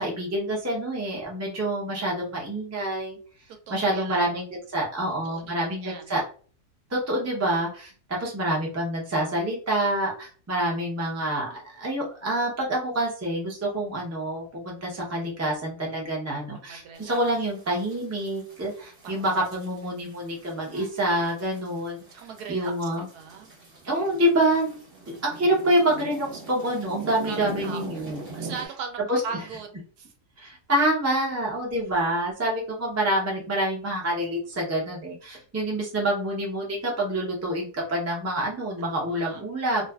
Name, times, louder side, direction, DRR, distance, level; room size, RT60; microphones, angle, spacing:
voice 1, 0.0-3.2 3.7-6.2 6.9-22.0 22.5-23.1 23.8-24.8 25.1-28.3 29.1-29.2 30.4-39.9, right 1 dB, 25° right, -2 dB, 0.3 m, -27 dB
voice 2, 3.7-4.3 5.1-6.1 16.6-17.2 19.0-19.2 20.7-20.9 22.1-22.7 23.1-23.5 27.3-28.1 28.4-30.1 38.8-39.4, right 5 dB, 80° right, 5 dB, 1.1 m, -39 dB
sound 1, 17.0-28.7, right 3 dB, 45° right, 0.9 m, -43 dB
2.4 x 2.4 x 2.3 m, 0.41 s
omnidirectional pair, 1.7 m